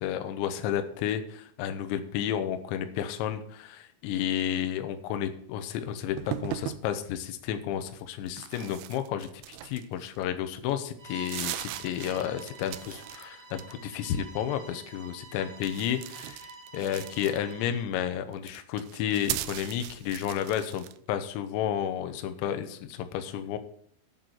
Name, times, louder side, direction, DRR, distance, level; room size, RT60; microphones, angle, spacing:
voice 1, 0.0-23.6, left 10 dB, 75° left, 8 dB, 3.1 m, -32 dB
sound 1, 6.2-6.9 8.3-10.2 10.7-10.8 11.1-13.2 13.5-14.0 15.6-17.6 18.3-21.0, right 15 dB, 90° right, 3.1 m, -38 dB
Bowed string instrument, 11.0-17.9, right 3 dB, 60° right, 2.0 m, -48 dB
9.2 x 6.6 x 8.0 m, 0.64 s
omnidirectional pair, 5.5 m